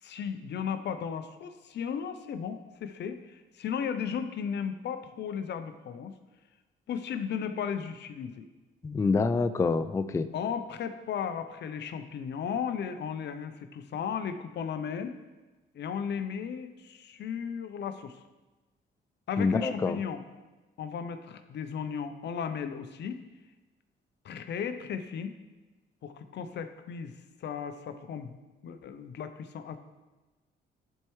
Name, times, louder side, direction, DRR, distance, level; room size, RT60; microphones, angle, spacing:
voice 1, 0.0-6.1 6.9-8.5 10.3-15.1 15.7-18.2 19.3-20.2 20.8-23.2 24.2-25.4 26.0-27.1 27.4-28.3 28.6-29.8, left 7 dB, 60° left, 10 dB, 0.6 m, -35 dB
voice 2, 8.8-10.3 19.4-20.0, left 4 dB, 15° left, 11 dB, 0.3 m, -26 dB
10.5 x 4.5 x 3.1 m, 1.2 s
cardioid pair, 90°, 20 cm